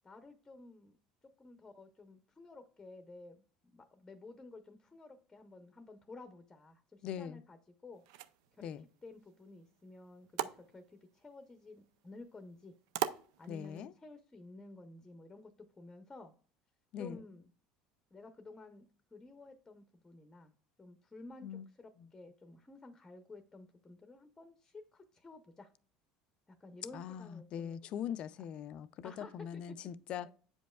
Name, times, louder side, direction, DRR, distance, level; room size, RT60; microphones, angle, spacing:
voice 1, 0.0-0.9 1.2-3.4 3.6-7.6 7.8-8.3 8.6-12.7 13.4-15.5 15.8-16.3 17.0-17.5 18.1-25.7 26.5-28.3 29.0-29.8 30.2-30.3, left 3 dB, 15° left, 0.6 m, -53 dB
voice 2, 7.0-7.4 8.6-8.8 13.5-13.9 16.9-17.2 21.4-21.7 26.9-30.3, left 9 dB, 45° left, 0.4 m, -41 dB
sound 1, 7.9-13.9, right 12 dB, 85° right, 0.4 m, -44 dB
8.1 x 5.2 x 2.3 m
cardioid pair, 140°, 2 cm